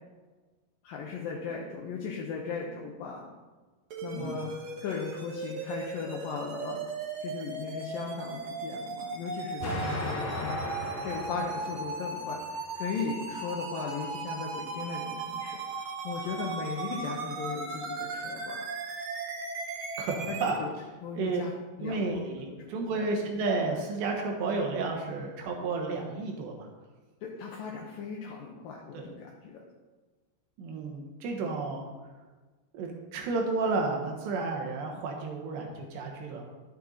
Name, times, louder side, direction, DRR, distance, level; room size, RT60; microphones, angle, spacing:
voice 1, 0.8-3.3 4.0-4.5 4.8-6.8 7.2-10.6 11.0-18.7 20.3-20.7 21.0-21.5 21.8-22.2 22.9-23.1 27.2-29.6, left 5 dB, 70° left, -2 dB, 2.3 m, -37 dB
sound 1, 3.9-20.5, right 3 dB, 65° right, 1.8 m, -37 dB
Explosion, 9.6-12.6, left 1 dB, 45° left, 3.1 m, -36 dB
voice 2, 20.0-20.6 21.2-21.4 21.8-26.7 28.9-29.0 30.6-31.9 32.7-36.4, right 3 dB, 80° right, 1 dB, 3.7 m, -32 dB
12.0 x 8.2 x 4.1 m, 1.3 s
omnidirectional pair, 4.9 m